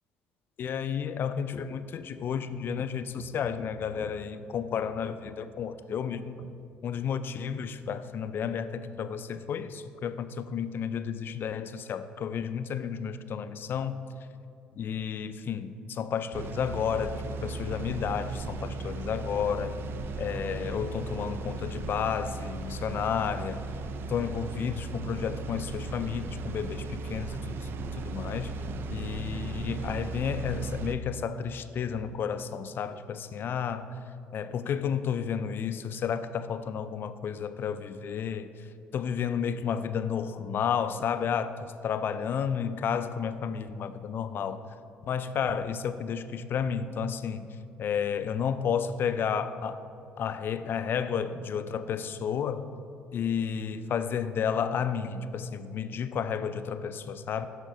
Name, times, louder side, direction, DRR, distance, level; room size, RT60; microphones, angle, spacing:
voice 1, 0.6-6.5 6.8-14.1 14.8-19.8 20.2-23.6 24.1-28.6 28.9-34.0 34.3-44.6 45.1-49.8 50.2-52.7 53.1-57.5, left 7 dB, 50° left, 12 dB, 0.3 m, -32 dB
sound 1, 16.3-31.0, right 3 dB, 55° right, 0.4 m, -36 dB
6.4 x 4.4 x 4.8 m, 2.5 s
supercardioid pair, 70°, 5 cm